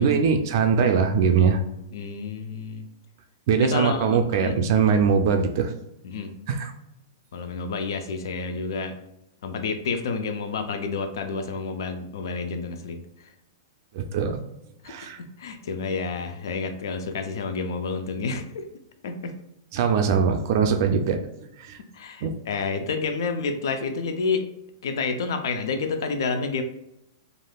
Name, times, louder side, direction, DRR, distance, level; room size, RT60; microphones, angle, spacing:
voice 1, 0.0-1.6 3.5-5.7 6.5-6.7 13.9-14.4 14.9-15.2 19.7-21.2 21.6-21.8 22.2-22.3, right 6 dB, 55° right, 6 dB, 0.3 m, -21 dB
voice 2, 1.9-2.9 3.5-4.6 6.0-6.3 7.3-8.9 9.4-13.3 14.8-15.0 15.4-18.7 19.0-19.3 21.9-24.4 24.8-26.6, left 4 dB, 75° left, 7 dB, 0.4 m, -29 dB
3.3 x 2.4 x 2.3 m, 0.85 s
hypercardioid pair, 140°, 2 cm